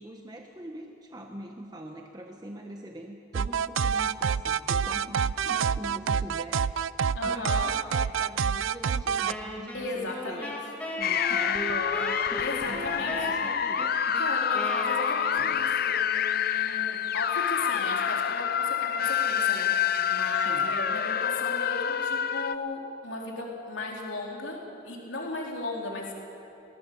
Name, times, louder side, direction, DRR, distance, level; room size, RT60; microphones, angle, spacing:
voice 1, 0.0-6.7 7.2-10.4 11.0-14.2 20.4-20.8, right 1 dB, 20° right, 2 dB, 1.1 m, -43 dB
sound 1, 3.3-9.3, right 6 dB, 80° right, 0.4 m, -27 dB
voice 2, 7.1-7.7 9.7-10.6 12.4-13.2 14.1-26.1, left 2 dB, 65° left, -2 dB, 4.1 m, -36 dB
Wind instrument woodwind instrument, 9.3-15.8, equal, 10° left, 2.9 m, -37 dB
sound 2, 11.0-22.5, left 8 dB, 50° left, 0.6 m, -27 dB
22.5 x 18.5 x 7.1 m, 2.8 s
head